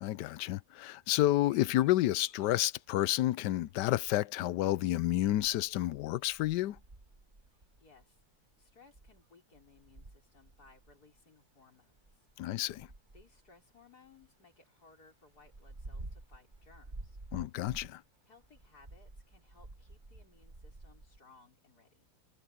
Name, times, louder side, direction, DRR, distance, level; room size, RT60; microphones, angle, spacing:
voice 1, 0.0-6.8 12.4-12.9 17.3-18.0, left 15 dB, 80° left, 1.2 m, -30 dB
sound 1, 1.4-3.0 3.3-9.2 9.5-11.2 11.9-14.3 14.5-14.6 14.9-18.1 18.4-21.2, right 2 dB, 30° right, 1.9 m, -52 dB
voice 2, 7.6-12.3 13.1-17.2 18.3-22.1, left 4 dB, 60° left, 5.2 m, -62 dB
omnidirectional pair, 1.9 m